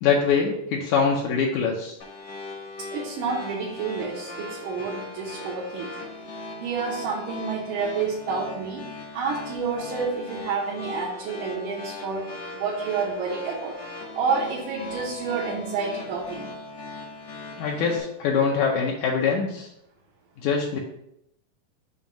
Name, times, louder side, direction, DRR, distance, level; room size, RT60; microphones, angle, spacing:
voice 1, 0.0-2.0 17.6-19.7 20.4-20.8, left 5 dB, 75° left, -1 dB, 2.0 m, -23 dB
sound 1, 2.0-18.0, left 2 dB, 50° left, 1.1 m, -39 dB
voice 2, 2.9-6.1 6.6-8.8 9.1-12.3 12.5-13.7 14.1-16.5, right 5 dB, 80° right, -4 dB, 2.5 m, -29 dB
7.0 x 2.7 x 5.1 m, 0.79 s
omnidirectional pair, 3.7 m